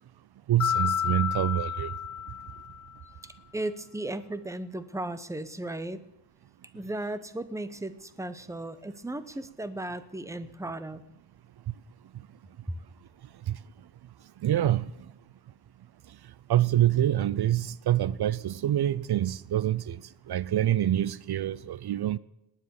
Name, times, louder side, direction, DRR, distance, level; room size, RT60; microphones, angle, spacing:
voice 1, 0.5-1.9 13.5-13.6 14.4-14.9 16.5-20.0 20.3-22.2, right 12 dB, 70° right, 0.6 m, -26 dB
Mallet percussion, 0.6-3.0, left 9 dB, 45° left, 0.6 m, -30 dB
voice 2, 3.5-6.0 6.7-11.0 12.7-12.8, right 1 dB, 5° right, 0.9 m, -35 dB
19.0 x 10.0 x 6.9 m
wide cardioid pair, 135°, 41 cm